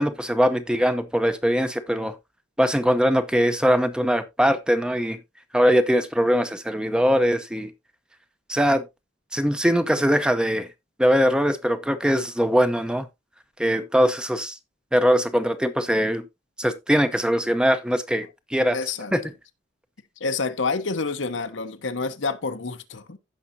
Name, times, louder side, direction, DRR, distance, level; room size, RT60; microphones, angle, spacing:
voice 1, 0.0-2.2 2.6-5.2 5.5-7.7 8.5-8.8 9.3-10.7 11.0-13.0 13.6-14.6 14.9-16.2 16.6-18.8 19.1-19.2, equal, 5° right, 0.7 m, -21 dB
voice 2, 18.7-19.2 20.2-23.2, left 4 dB, 70° left, 1.0 m, -28 dB
15.5 x 5.5 x 2.6 m
head